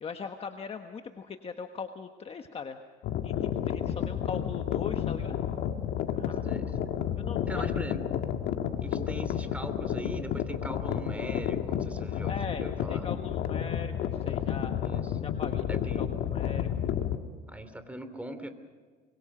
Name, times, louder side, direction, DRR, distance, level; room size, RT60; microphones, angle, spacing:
voice 1, 0.0-2.8 3.2-5.4 6.1-6.5 7.2-7.7 9.0-9.1 12.2-14.8 15.2-16.7, left 5 dB, 35° left, 5 dB, 1.4 m, -40 dB
sound 1, 3.0-17.2, left 9 dB, 80° left, 1.7 m, -31 dB
voice 2, 6.4-7.0 7.5-8.0 8.8-13.1 14.8-15.1 15.7-16.1 17.5-18.5, right 1 dB, 10° right, 10 dB, 3.0 m, -40 dB
25.5 x 23.0 x 5.1 m, 1.5 s
cardioid pair, 110°, 17 cm